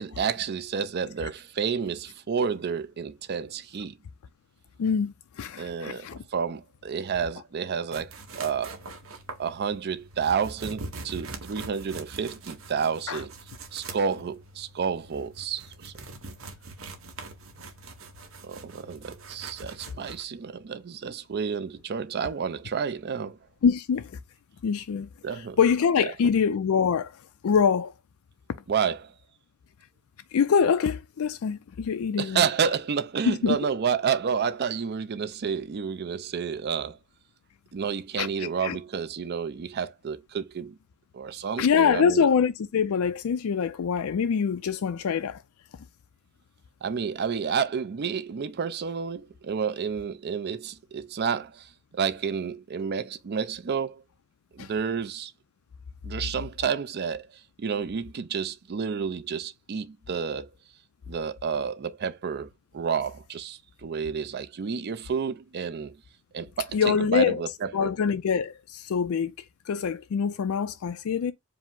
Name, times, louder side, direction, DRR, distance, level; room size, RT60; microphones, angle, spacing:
voice 1, 0.0-4.0 5.6-8.8 9.4-13.3 13.7-15.9 18.4-23.4 25.2-25.6 26.0-26.1 28.7-29.1 32.2-37.0 37.7-40.8 41.1-42.3 46.8-54.0 54.5-55.3 56.0-57.3 57.6-60.5 61.1-66.0 66.3-67.9, right 6 dB, 50° right, 0.4 m, -30 dB
voice 2, 4.8-6.2 13.1-13.2 23.6-24.1 24.6-25.1 25.6-27.1 27.4-27.9 30.3-32.5 33.3-33.6 38.2-38.8 41.6-45.4 54.6-54.7 66.7-67.4 67.7-69.3 69.7-71.3, left 6 dB, 80° left, 0.4 m, -24 dB
sound 1, 7.9-20.2, right 3 dB, 65° right, 0.9 m, -43 dB
4.9 x 2.0 x 3.6 m
head